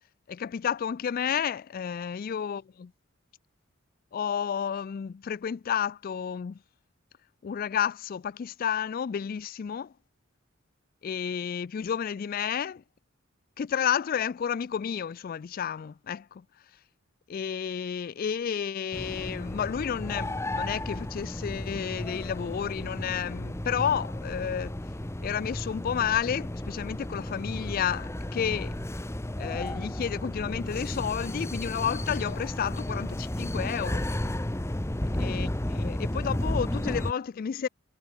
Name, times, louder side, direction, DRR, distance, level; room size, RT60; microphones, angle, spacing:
voice 1, 0.3-2.9 4.1-6.6 7.4-9.9 11.0-12.8 13.6-16.3 17.3-24.7 25.2-28.7 29.4-34.0 35.2-37.7, left 8 dB, 45° left, 0.3 m, -31 dB
sound 1, 18.9-37.1, left 1 dB, 15° left, 0.8 m, -33 dB
head